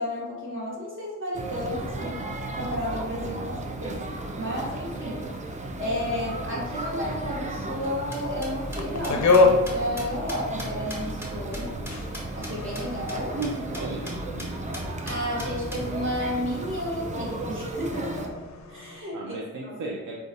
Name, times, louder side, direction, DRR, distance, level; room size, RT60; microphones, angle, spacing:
voice 1, 0.0-2.2 2.5-5.2 5.8-11.7 12.4-13.4 15.0-18.3 18.7-19.4 19.6-19.8, equal, 40° right, -5 dB, 1.2 m, -32 dB
sound 1, 1.3-18.3, right 2 dB, 25° right, 0.4 m, -34 dB
sound 2, 7.8-12.5 12.8-12.9 13.1-13.2 13.4-13.5 13.7-14.1 14.4-14.5 14.7-15.8, equal, 10° right, 1.1 m, -39 dB
sound 3, 8.7-10.9 11.3-19.0, left 3 dB, 65° left, 0.4 m, -28 dB
voice 2, 13.3-14.6 19.1-20.2, right 3 dB, 85° right, -2 dB, 0.5 m, -35 dB
3.8 x 2.3 x 2.5 m, 1.2 s
cardioid pair, 55°, 30 cm